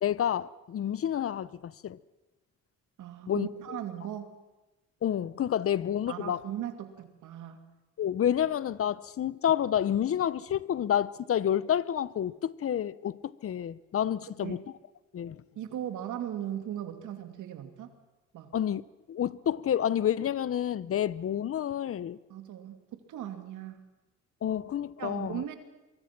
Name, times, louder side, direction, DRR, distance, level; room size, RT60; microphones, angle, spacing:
voice 1, 0.0-2.0 3.3-3.5 5.0-6.4 8.0-14.6 15.1-15.4 18.5-18.8 19.1-22.2 24.4-25.4, left 10 dB, 50° left, 0.8 m, -29 dB
voice 2, 3.0-4.3 6.1-7.6 14.4-14.6 15.5-17.9 18.3-18.5 22.3-23.8 25.0-25.6, right 10 dB, 80° right, 2.6 m, -38 dB
24.5 x 23.5 x 6.0 m
cardioid pair, 90°, 30 cm